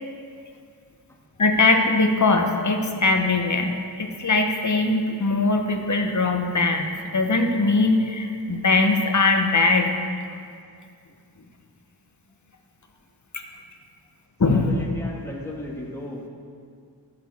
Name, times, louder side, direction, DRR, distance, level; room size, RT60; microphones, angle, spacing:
voice 1, 1.4-9.9 13.3-13.4 14.4-14.7, left 3 dB, 40° left, 4 dB, 1.0 m, -21 dB
voice 2, 14.5-16.3, left 1 dB, 5° left, -4 dB, 1.9 m, -35 dB
13.5 x 6.9 x 3.6 m, 2.2 s
wide cardioid pair, 70°, 46 cm